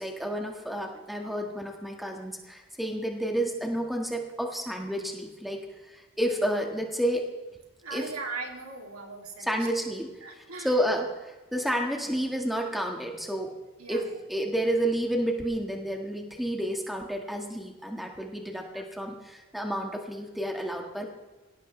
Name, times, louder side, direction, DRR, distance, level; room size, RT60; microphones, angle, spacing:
voice 1, 0.0-7.3 7.9-8.1 9.5-13.6 13.9-21.1, right 1 dB, ahead, 1 dB, 1.7 m, -30 dB
voice 2, 7.8-9.7 10.2-10.8 13.8-14.2 18.7-19.0, right 3 dB, 85° right, 1 dB, 2.7 m, -40 dB
23.5 x 17.0 x 3.3 m, 1.2 s
head